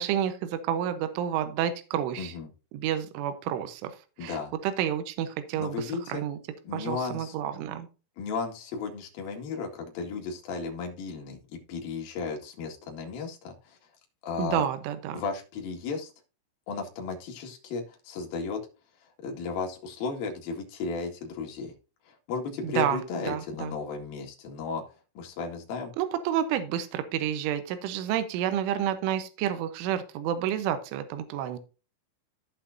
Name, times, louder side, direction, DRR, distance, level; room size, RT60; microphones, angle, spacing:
voice 1, 0.0-2.3 2.7-3.9 4.2-6.4 6.7-7.9 14.4-15.2 22.6-23.0 23.3-23.8 26.0-31.6, right 10 dB, 80° right, 10 dB, 3.4 m, -30 dB
voice 2, 2.2-2.5 4.2-4.5 5.6-6.2 6.6-7.3 8.2-13.8 14.2-14.6 15.1-16.1 16.7-18.6 19.2-21.7 22.1-24.8 25.1-25.9, left 4 dB, 55° left, 2 dB, 3.3 m, -34 dB
15.0 x 5.8 x 2.7 m, 0.32 s
omnidirectional pair, 5.6 m